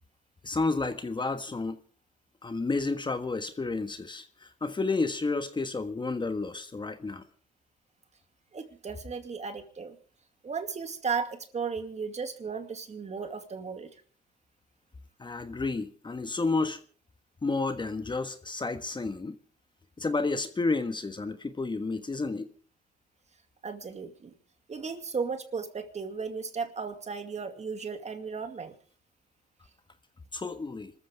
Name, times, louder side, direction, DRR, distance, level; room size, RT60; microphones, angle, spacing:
voice 1, 0.4-1.8 2.4-7.2 15.2-16.8 17.4-19.4 20.0-22.5 30.3-30.9, left 3 dB, 25° left, 1.5 m, -31 dB
voice 2, 8.5-10.0 10.4-13.9 23.6-24.3 24.7-28.7, right 5 dB, 35° right, 2.4 m, -35 dB
26.5 x 14.0 x 3.5 m
supercardioid pair, 85°, 20 cm